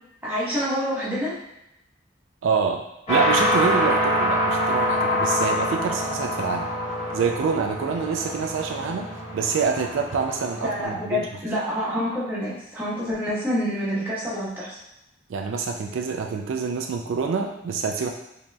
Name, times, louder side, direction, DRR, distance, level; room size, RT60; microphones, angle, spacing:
voice 1, 0.2-1.3 10.6-14.8, equal, 10° right, -8 dB, 1.0 m, -27 dB
voice 2, 2.4-6.7 7.1-9.1 9.3-11.3 15.3-18.1, right 5 dB, 75° right, 4 dB, 0.3 m, -26 dB
sound 1, 3.1-10.8, equal, 35° left, 1.4 m, -25 dB
4.9 x 2.8 x 2.3 m, 0.87 s
head